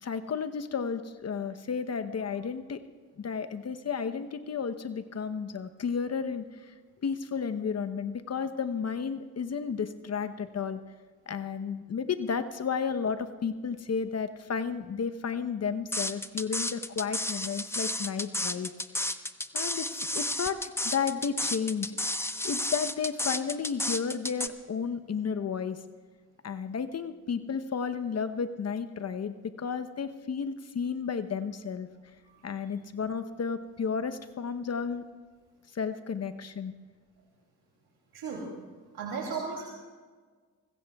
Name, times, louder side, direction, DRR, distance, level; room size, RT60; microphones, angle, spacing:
voice 1, 0.0-2.8 3.2-6.7 7.0-10.8 11.3-18.7 19.5-19.9 20.1-20.6 20.8-22.0 22.4-25.8 26.4-31.9 32.4-35.0 35.7-36.7, left 6 dB, 35° left, 10 dB, 0.9 m, -32 dB
sound 1, 15.9-24.5, left 1 dB, 5° left, 1.0 m, -32 dB
voice 2, 38.1-38.5 38.9-39.6, right 5 dB, 60° right, -2 dB, 2.9 m, -35 dB
24.0 x 21.0 x 2.4 m, 1.5 s
hypercardioid pair, 45°, 42 cm